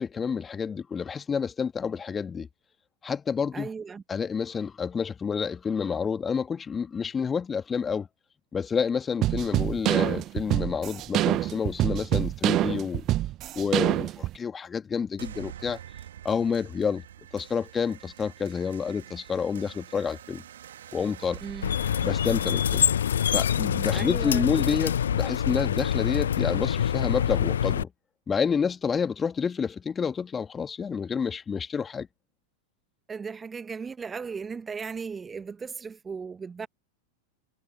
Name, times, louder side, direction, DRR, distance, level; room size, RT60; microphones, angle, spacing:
voice 1, 0.0-2.5 3.0-3.7 4.1-8.1 8.5-13.0 13.5-15.8 16.2-17.0 17.3-20.4 20.9-21.4 22.0-22.8 23.3-27.9 28.3-32.1, left 6 dB, 20° left, 2.2 m, -29 dB
voice 2, 3.5-4.0 21.4-21.7 23.9-24.4 33.1-36.7, right 5 dB, 15° right, 1.5 m, -36 dB
sound 1, 9.2-14.3, right 14 dB, 35° right, 0.8 m, -25 dB
sound 2, 15.2-24.2, right 11 dB, 60° right, 1.7 m, -46 dB
sound 3, 21.6-27.8, left 9 dB, 65° left, 0.7 m, -25 dB
figure-of-eight pair, 90°, 0 cm